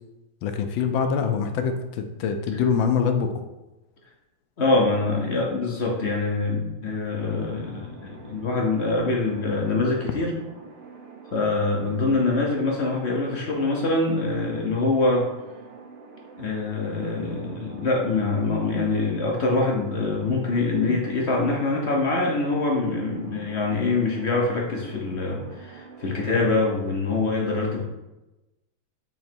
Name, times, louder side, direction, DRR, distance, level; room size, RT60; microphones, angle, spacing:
voice 1, 0.4-3.3, left 6 dB, 75° left, 7 dB, 1.3 m, -24 dB
voice 2, 4.6-10.4 11.3-15.3 16.4-27.8, left 3 dB, 55° left, -1 dB, 0.7 m, -24 dB
sound 1, 7.2-26.7, right 4 dB, 65° right, 1.7 m, -46 dB
8.4 x 3.1 x 4.5 m, 1.0 s
omnidirectional pair, 2.3 m